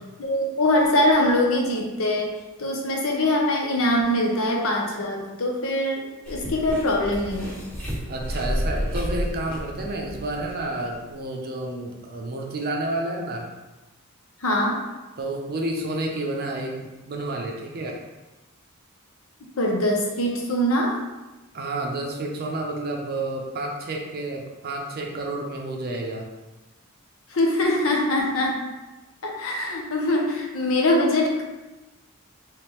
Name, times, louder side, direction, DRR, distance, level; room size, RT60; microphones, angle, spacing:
voice 1, 0.2-2.3 2.6-7.6 14.4-14.8 19.6-21.0 27.3-28.6 29.2-31.4, left 1 dB, 65° left, 0 dB, 0.7 m, -23 dB
sound 1, 6.2-10.8 11.1-11.2, equal, 5° left, 1.3 m, -30 dB
voice 2, 8.1-13.5 15.2-18.0 21.5-26.3, right 2 dB, 45° right, 1 dB, 0.5 m, -30 dB
3.4 x 3.2 x 3.0 m, 1.1 s
head